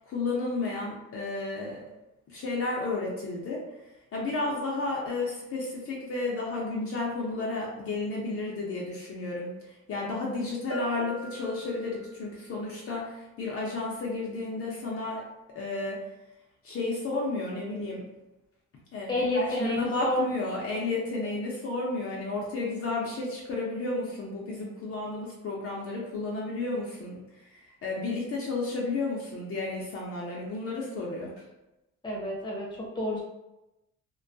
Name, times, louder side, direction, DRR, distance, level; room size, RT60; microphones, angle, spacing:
voice 1, 0.1-1.9 2.3-3.6 4.1-15.2 15.5-16.0 16.6-18.0 18.9-31.4, left 3 dB, 50° left, -3 dB, 0.6 m, -32 dB
Bell, 10.7-12.3, right 1 dB, 45° right, 0.6 m, -38 dB
voice 2, 19.1-20.3 32.0-33.2, left 1 dB, 15° left, -3 dB, 0.8 m, -29 dB
2.2 x 2.1 x 2.6 m, 0.96 s
cardioid pair, 90°, 30 cm